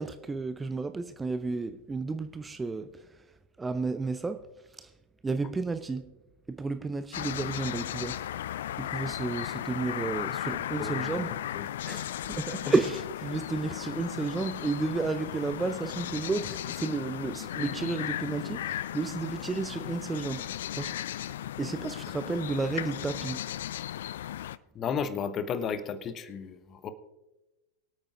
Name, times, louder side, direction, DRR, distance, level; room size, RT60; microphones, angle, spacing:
voice 1, 0.0-3.3 3.6-4.5 4.8-4.9 5.2-6.1 6.5-8.3 8.5-11.4 11.9-21.0 21.6-23.5, right 3 dB, 10° right, 0.5 m, -32 dB
sound 1, 7.1-24.6, left 12 dB, 60° left, 0.3 m, -36 dB
voice 2, 10.8-11.2 11.5-12.0 12.6-12.7 24.7-26.9, left 6 dB, 30° left, 1.0 m, -34 dB
24.0 x 8.7 x 2.5 m
figure-of-eight pair, 90°, 0 cm